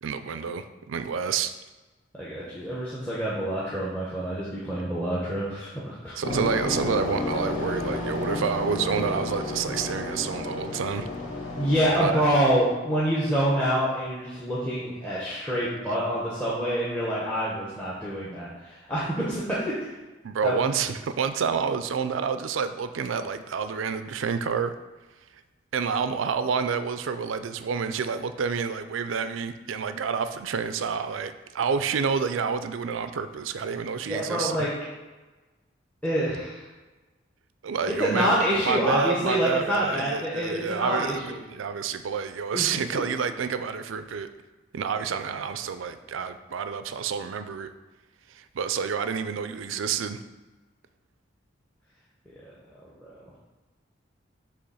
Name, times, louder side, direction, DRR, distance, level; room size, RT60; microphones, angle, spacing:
voice 1, 0.0-1.5 6.2-11.1 12.0-12.2 20.2-24.7 25.7-34.7 37.6-38.4 38.7-44.3 44.7-47.7 48.3-50.2, right 6 dB, 85° right, 10 dB, 0.4 m, -29 dB
voice 2, 2.2-6.2 11.6-19.9 20.4-20.7 34.1-34.7 36.0-36.6 37.9-41.4 42.5-43.0 45.1-45.2, equal, 5° left, -8 dB, 0.9 m, -27 dB
sound 1, 6.2-12.3, left 2 dB, 85° left, 1.5 m, -32 dB
6.8 x 3.0 x 5.6 m, 1.2 s
head